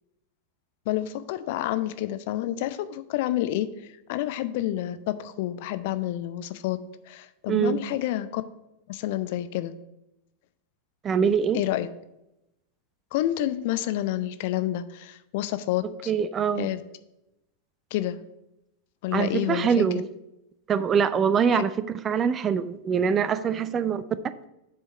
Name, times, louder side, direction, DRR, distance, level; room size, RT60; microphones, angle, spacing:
voice 1, 0.9-3.7 4.1-8.4 8.9-9.7 11.5-11.9 13.1-16.1 16.6-16.8 17.9-18.2 19.0-19.8 21.5-21.6, left 13 dB, 50° left, 12 dB, 0.5 m, -29 dB
voice 2, 7.5-7.8 11.0-11.6 16.1-16.7 19.1-20.1 20.7-24.0, right 7 dB, 25° right, 14 dB, 0.4 m, -24 dB
7.5 x 4.6 x 6.3 m, 0.89 s
figure-of-eight pair, 90°, 0 cm